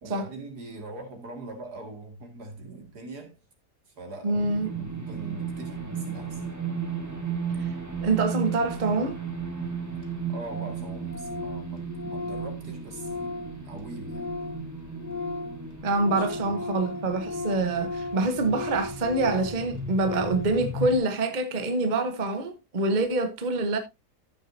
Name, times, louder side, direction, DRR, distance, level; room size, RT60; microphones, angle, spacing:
voice 1, 0.0-3.4 3.9-6.4 10.3-14.4 16.1-16.6, right 2 dB, 75° right, 2.8 m, -42 dB
voice 2, 4.2-4.7 8.0-9.2 15.8-23.8, right 2 dB, 30° right, 1.1 m, -26 dB
sound 1, 4.3-21.0, right 5 dB, 10° right, 2.1 m, -35 dB
Organ, 9.4-9.5 9.7-9.8 10.0-10.1 10.4-10.8 11.1-14.7 14.9-20.6, left 3 dB, 80° left, 2.1 m, -36 dB
14.5 x 6.3 x 2.7 m
omnidirectional pair, 1.7 m